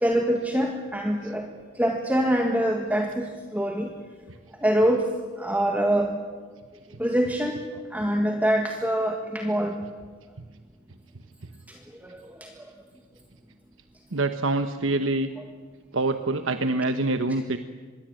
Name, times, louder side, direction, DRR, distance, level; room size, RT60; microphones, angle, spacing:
voice 1, 0.0-1.5 1.8-3.3 3.5-3.9 4.6-5.1 5.4-6.1 7.0-7.6 7.9-9.7 12.4-12.5, right 1 dB, 10° right, 2 dB, 1.7 m, -24 dB
voice 2, 14.1-15.3 15.9-17.6, right 2 dB, 85° right, 8 dB, 1.1 m, -25 dB
25.5 x 21.5 x 9.0 m, 1.5 s
head